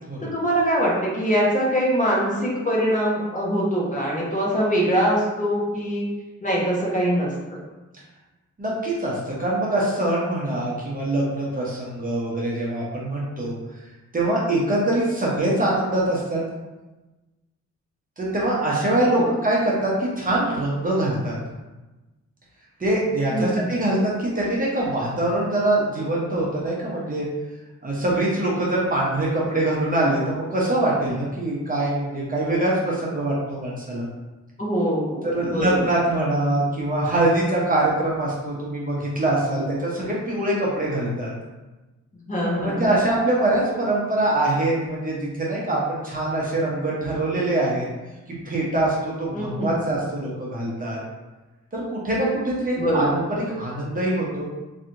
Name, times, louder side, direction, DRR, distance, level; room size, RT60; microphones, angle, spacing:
voice 1, 0.2-6.1 6.4-7.3 19.1-19.3 23.3-23.7 34.6-35.9 42.3-42.9 49.3-49.9 52.8-53.1, equal, 25° left, -5 dB, 1.0 m, -23 dB
voice 2, 8.6-13.6 14.1-16.4 18.2-21.3 22.8-27.3 27.8-34.1 35.2-41.3 42.5-47.9 48.3-51.0 51.7-54.5, right 1 dB, 30° right, -5 dB, 0.9 m, -23 dB
3.3 x 2.8 x 2.6 m, 1.1 s
cardioid pair, 95°, 30 cm